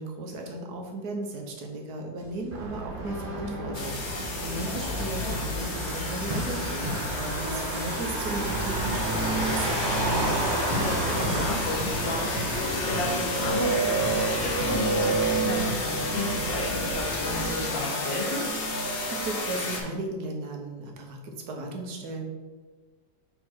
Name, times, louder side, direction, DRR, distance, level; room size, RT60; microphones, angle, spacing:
voice 1, 0.0-9.9 19.1-22.2, right 2 dB, 60° right, 2 dB, 1.4 m, -36 dB
sound 1, 2.2-15.7, equal, 30° right, 0.7 m, -37 dB
Motor vehicle (road), 2.5-17.5, right 2 dB, 80° right, 1.9 m, -33 dB
sound 2, 3.7-19.8, equal, 45° left, 0.8 m, -30 dB
voice 2, 10.8-18.4, left 2 dB, 80° left, 0 dB, 2.0 m, -33 dB
5.8 x 4.3 x 4.4 m, 1.4 s
omnidirectional pair, 2.0 m